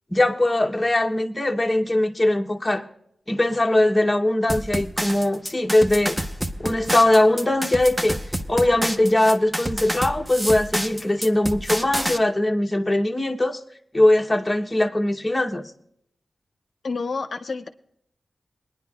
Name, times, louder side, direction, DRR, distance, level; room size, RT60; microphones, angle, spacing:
voice 1, 0.1-2.8 3.3-6.2 6.6-8.2 8.5-13.6 13.9-15.7, left 1 dB, 15° left, 0.9 m, -21 dB
sound 1, 4.5-12.2, equal, 10° right, 0.6 m, -28 dB
voice 2, 16.8-17.7, left 4 dB, 60° left, 0.6 m, -29 dB
21.5 x 10.5 x 2.3 m
wide cardioid pair, 105°, 0 cm